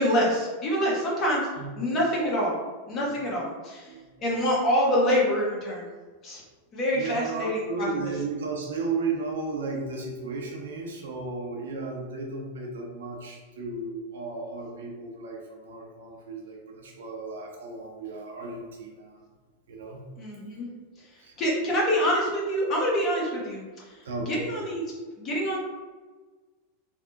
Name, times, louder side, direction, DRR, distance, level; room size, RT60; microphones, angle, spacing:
voice 1, 0.0-1.5 1.8-2.6 2.9-3.9 4.2-5.8 6.2-6.4 6.7-8.1 20.2-20.7 21.4-24.8 25.2-25.6, equal, 30° left, -4 dB, 0.9 m, -26 dB
voice 2, 1.6-1.9 3.0-3.2 3.9-4.1 6.9-19.2 19.7-20.0 21.2-21.3 24.0-24.4, right 4 dB, 60° right, 0 dB, 0.5 m, -34 dB
3.4 x 2.0 x 2.6 m, 1.4 s
figure-of-eight pair, 90°, 0 cm